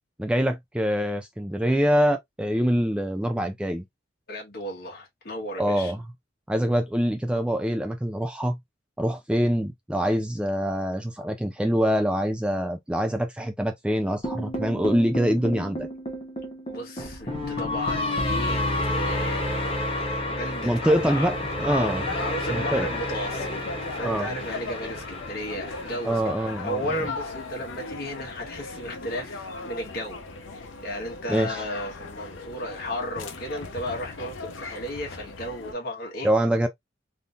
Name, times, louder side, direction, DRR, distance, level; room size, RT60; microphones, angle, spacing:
voice 1, 0.2-3.8 5.6-6.0 6.5-8.6 9.0-15.9 20.6-22.0 22.5-22.9 24.0-24.3 26.0-26.8 31.3-31.6 36.2-36.7, equal, 5° right, 0.3 m, -24 dB
voice 2, 4.3-5.9 16.7-19.6 20.1-21.3 21.6-23.5 23.9-36.3, equal, 55° left, 1.3 m, -34 dB
sound 1, 14.2-26.4, left 1 dB, 30° left, 0.9 m, -30 dB
sound 2, 20.9-35.7, left 3 dB, 85° left, 0.7 m, -38 dB
3.5 x 2.7 x 2.4 m
head